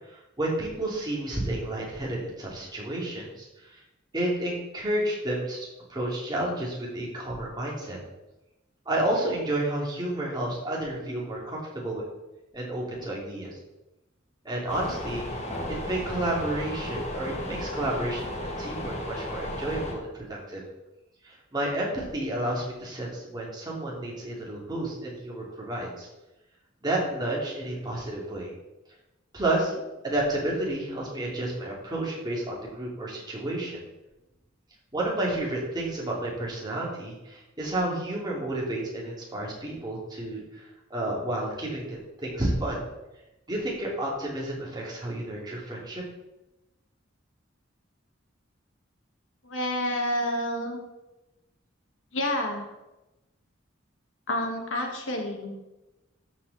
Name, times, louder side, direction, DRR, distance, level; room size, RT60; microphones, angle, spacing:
voice 1, 0.1-3.8 4.1-8.0 8.9-12.0 12.5-13.5 14.4-15.3 15.9-20.6 21.2-26.1 26.8-28.5 29.3-33.8 34.9-40.6 40.9-42.8 43.5-46.0, right 1 dB, 20° right, -4 dB, 2.7 m, -31 dB
sound 1, 14.7-19.9, left 1 dB, 35° left, 1.8 m, -34 dB
voice 2, 49.4-50.8 52.1-52.7 54.3-55.5, left 1 dB, 75° left, 2 dB, 1.9 m, -29 dB
13.5 x 5.0 x 4.1 m, 0.99 s
head